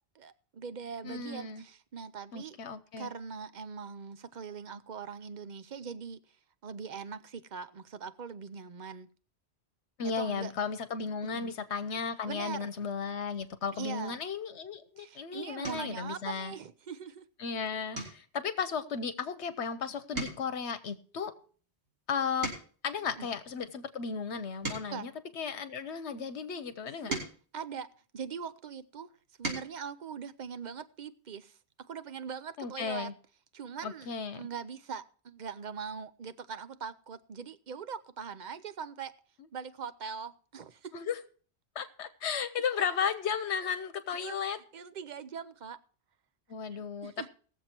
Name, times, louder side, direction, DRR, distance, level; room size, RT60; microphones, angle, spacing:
voice 1, 0.1-2.6 3.0-6.4 6.6-9.1 10.0-10.5 11.3-11.6 12.3-12.7 13.7-14.2 15.0-17.3 17.7-17.8 19.8-19.9 23.2-23.3 24.7-25.1 26.8-27.2 27.5-27.9 28.1-29.1 29.4-33.1 33.5-39.1 39.5-40.9 42.3-42.4 44.2-44.4 44.7-45.8 47.0-47.3, right 6 dB, 50° right, 0.8 m, -42 dB
voice 2, 1.0-1.6 2.3-3.1 10.0-16.5 17.4-21.3 22.1-22.5 22.8-27.1 32.6-33.1 33.8-34.5 40.9-41.2 41.7-44.6 46.5-47.3, left 6 dB, 80° left, 1.1 m, -35 dB
sound 1, 14.8-15.0 15.6-16.0 16.5-16.9 17.2-17.4 17.9-19.7 20.0-22.9 23.6-26.0 26.7-28.5 29.1-29.8 31.2-31.3 31.6-31.8, right 2 dB, 65° right, 3.8 m, -42 dB
18.5 x 7.3 x 4.4 m
omnidirectional pair, 1.1 m